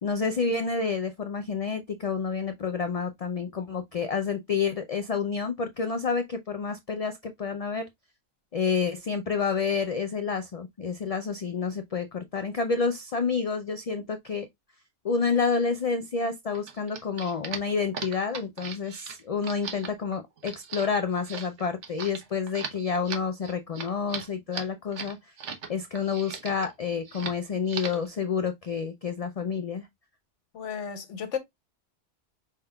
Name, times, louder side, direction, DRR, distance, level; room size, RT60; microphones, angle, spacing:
voice 1, 0.0-7.8 8.5-14.5 15.0-25.3 25.7-29.9, left 5 dB, 50° left, 0.4 m, -29 dB
sound 1, 16.5-25.7 25.9-26.7 27.0-27.4 27.7-28.1, right 6 dB, 80° right, 1.3 m, -38 dB
voice 2, 30.5-31.4, left 7 dB, 90° left, 1.3 m, -33 dB
5.4 x 3.6 x 2.3 m
omnidirectional pair, 1.2 m